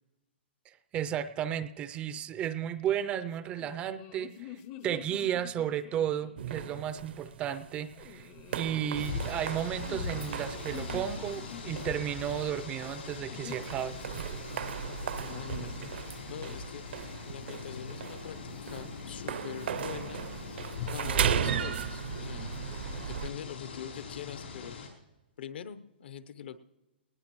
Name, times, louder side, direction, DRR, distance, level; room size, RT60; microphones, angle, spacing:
voice 1, 0.9-14.0, right 10 dB, 20° right, 14 dB, 0.4 m, -33 dB
sound 1, 3.4-6.5 7.9-9.0 9.8-11.9 13.3-13.6, left 11 dB, 30° left, 0.6 m, -47 dB
sound 2, 6.4-23.3, right 8 dB, 70° right, 0.7 m, -37 dB
sound 3, 8.9-24.9, left 5 dB, 80° left, 4.2 m, -42 dB
voice 2, 14.9-16.9 17.3-20.2 20.9-22.5 23.1-24.8 25.4-26.6, left 8 dB, 65° left, 14 dB, 0.8 m, -43 dB
19.5 x 19.0 x 3.1 m, 1.1 s
hypercardioid pair, 155°, 6 cm